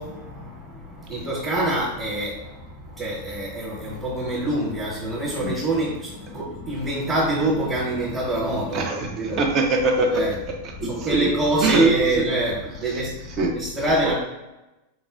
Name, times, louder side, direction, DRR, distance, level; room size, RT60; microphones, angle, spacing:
voice 1, 0.0-9.4 10.1-10.3 10.8-14.1, right 1 dB, 10° right, -7 dB, 1.0 m, -26 dB
voice 2, 8.7-10.2 10.8-11.3 11.6-12.2 13.4-13.5, right 3 dB, 35° right, 3 dB, 0.6 m, -22 dB
4.1 x 2.1 x 2.5 m, 1.0 s
figure-of-eight pair, 90°, 0 cm